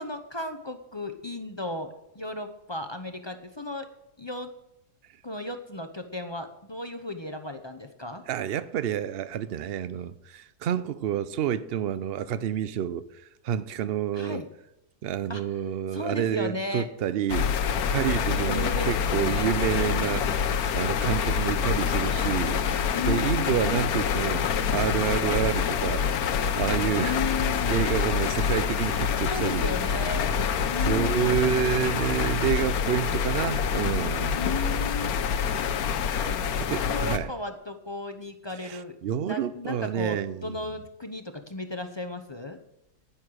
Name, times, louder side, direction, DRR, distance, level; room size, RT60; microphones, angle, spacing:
voice 1, 0.0-3.9 4.2-4.5 5.2-8.2 14.1-14.5 15.3-15.4 15.9-16.9 18.2-19.5 22.9-23.6 27.0-27.7 29.3-30.4 30.6-31.5 34.3-35.1 36.2-36.3 36.8-39.0 39.3-42.6, left 2 dB, 25° left, 0.6 m, -35 dB
voice 2, 8.3-14.4 15.0-20.5 20.7-22.7 23.0-26.0 26.6-27.2 27.7-29.8 30.8-34.4 36.6-37.3 38.6-40.6, right 9 dB, 70° right, 0.5 m, -29 dB
sound 1, 17.3-37.2, left 7 dB, 70° left, 1.3 m, -26 dB
11.0 x 10.5 x 6.3 m
omnidirectional pair, 1.7 m